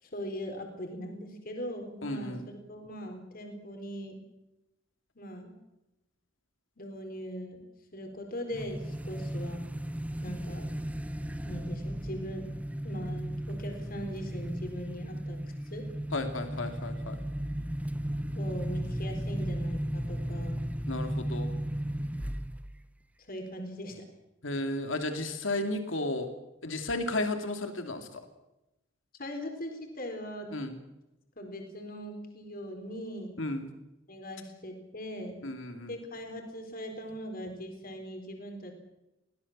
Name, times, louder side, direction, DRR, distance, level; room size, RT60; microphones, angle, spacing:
voice 1, 0.0-4.2 5.2-5.6 6.8-7.7 7.9-9.6 10.2-10.7 11.4-12.5 12.8-15.4 15.7-15.8 18.3-20.7 23.2-24.0 29.2-30.5 31.4-33.3 34.1-35.4 35.9-38.7, equal, 50° left, 4 dB, 4.3 m, -40 dB
voice 2, 2.0-2.5 16.1-17.2 20.9-21.5 24.4-26.3 26.6-28.2 30.5-30.8 33.4-33.7 35.4-35.9, left 2 dB, 80° left, 6 dB, 2.6 m, -33 dB
sound 1, 8.5-22.8, equal, 5° right, 0.9 m, -35 dB
22.5 x 17.5 x 7.4 m, 0.93 s
head